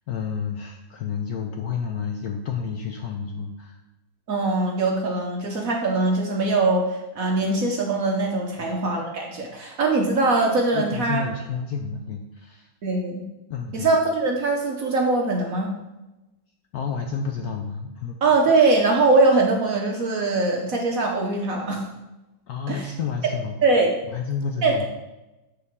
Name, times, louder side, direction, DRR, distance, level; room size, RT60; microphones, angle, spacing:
voice 1, 0.1-3.8 8.6-8.8 10.7-12.7 13.5-13.9 16.7-18.2 22.5-23.6 24.1-24.9, left 6 dB, 70° left, 3 dB, 0.9 m, -30 dB
voice 2, 4.3-11.2 12.8-13.3 13.7-15.7 18.2-21.9 22.7-22.9 23.6-23.9 24.6-24.9, right 3 dB, 55° right, 1 dB, 1.0 m, -22 dB
6.9 x 6.7 x 3.6 m, 1.0 s
omnidirectional pair, 2.2 m